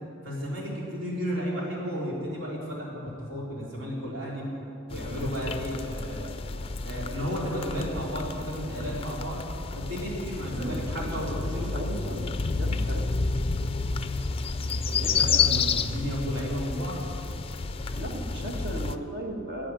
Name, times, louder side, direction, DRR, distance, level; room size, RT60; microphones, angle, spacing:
voice 1, 0.2-4.4 4.9-6.3 6.8-9.4 9.7-11.9 14.6-17.0, equal, 70° right, -4 dB, 3.9 m, -33 dB
sound 1, 4.9-19.0, left 4 dB, 30° left, 0.4 m, -30 dB
voice 2, 10.5-13.2 14.9-15.4 17.9-19.7, right 1 dB, 55° right, 2 dB, 1.7 m, -37 dB
12.0 x 8.9 x 9.8 m, 2.6 s
head